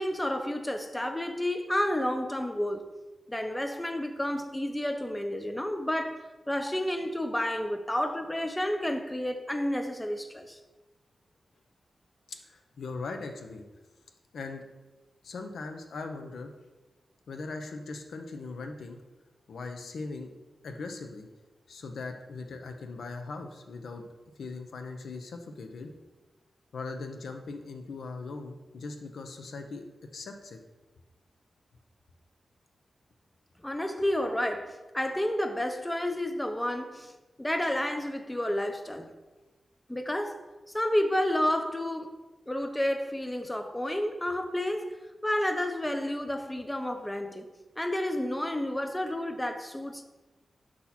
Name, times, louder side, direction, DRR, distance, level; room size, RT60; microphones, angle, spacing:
voice 1, 0.0-2.8 3.3-10.6 33.6-37.1 37.4-39.1 39.9-40.4 40.7-42.1 42.5-47.5 47.8-50.0, left 1 dB, 10° left, 0.4 m, -30 dB
voice 2, 12.3-13.6 14.3-14.6 15.2-16.5 17.3-19.0 19.5-20.3 20.6-21.3 21.7-24.0 24.4-25.9 26.7-29.8 30.1-30.6, left 3 dB, 80° left, 0.6 m, -39 dB
6.2 x 2.9 x 5.7 m
wide cardioid pair, 140°, 0 cm